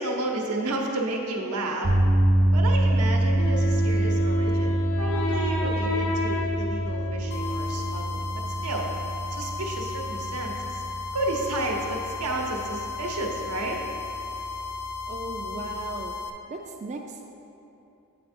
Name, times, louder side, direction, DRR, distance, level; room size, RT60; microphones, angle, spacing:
voice 1, 0.0-1.9 2.5-8.9 9.3-10.8 11.1-13.8, right 2 dB, 90° right, 0 dB, 0.9 m, -31 dB
sound 1, 1.8-16.1, right 1 dB, 50° right, 0.7 m, -26 dB
Wind instrument woodwind instrument, 3.4-8.2, left 2 dB, 75° left, 0.8 m, -31 dB
sound 2, 7.3-16.3, left 4 dB, 50° left, 0.4 m, -35 dB
voice 2, 15.1-16.1 16.5-17.3, right 2 dB, 30° right, 2 dB, 0.3 m, -36 dB
8.6 x 4.3 x 4.3 m, 2.8 s
head